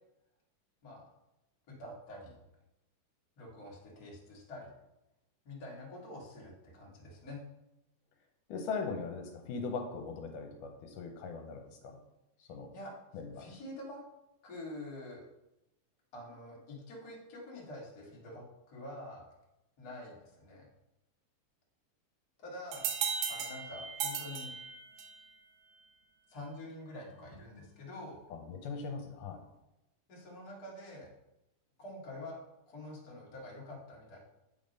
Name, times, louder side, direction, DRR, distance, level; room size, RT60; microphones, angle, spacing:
voice 1, 1.7-2.4 3.4-4.7 5.4-7.4 12.7-12.9 13.4-14.0 14.4-15.2 16.1-19.3 19.8-20.7 22.4-22.9 23.3-24.5 26.3-28.2 30.1-31.1 31.8-32.4 32.7-34.2, left 1 dB, 35° left, -4 dB, 1.8 m, -46 dB
voice 2, 8.5-12.0 12.4-12.7 13.1-13.5 28.3-29.4, left 4 dB, 80° left, 3 dB, 2.3 m, -40 dB
sound 1, 22.7-25.3, right 7 dB, 80° right, 2.4 m, -36 dB
8.8 x 3.6 x 5.2 m, 0.91 s
omnidirectional pair, 3.7 m